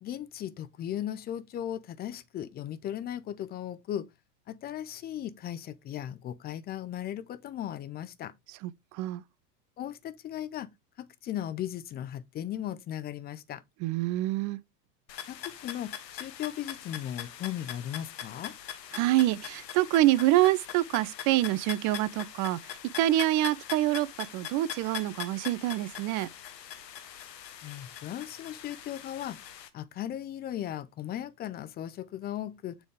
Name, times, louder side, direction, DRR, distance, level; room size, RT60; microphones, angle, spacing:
voice 1, 0.0-4.1 4.5-8.3 9.8-10.7 11.0-13.6 15.3-18.5 27.6-29.4 29.7-32.8, left 11 dB, 20° left, 0.4 m, -37 dB
voice 2, 13.8-14.6 18.9-22.6 23.0-24.1 24.3-26.3, right 15 dB, 40° right, 0.6 m, -26 dB
sound 1, 15.1-29.7, left 9 dB, 85° left, 1.1 m, -42 dB
7.0 x 3.6 x 4.9 m
hypercardioid pair, 100°, 49 cm